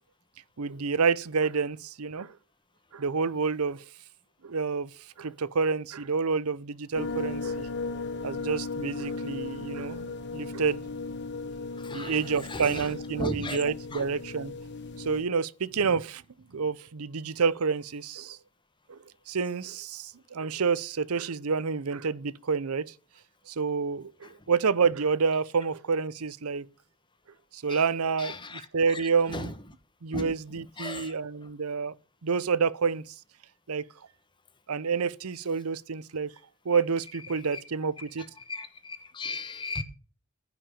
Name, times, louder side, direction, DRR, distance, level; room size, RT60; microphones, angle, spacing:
voice 1, 0.6-2.3 2.9-3.8 4.4-4.9 5.2-7.7 8.2-10.8 11.9-14.5 15.0-16.2 16.5-18.4 18.9-19.0 19.3-22.9 23.5-26.6 27.5-29.5 30.0-31.9 32.2-33.0 33.7-33.8 34.7-36.3 36.7-38.2, right 5 dB, 80° right, 0.7 m, -28 dB
sound 1, 6.9-15.2, left 3 dB, 50° left, 1.1 m, -36 dB
voice 2, 13.2-13.6 13.9-14.0 28.2-28.6 29.3-29.4 30.1-30.3 30.8-31.1 38.5-39.8, left 2 dB, 20° left, 1.1 m, -35 dB
15.0 x 5.9 x 7.0 m
head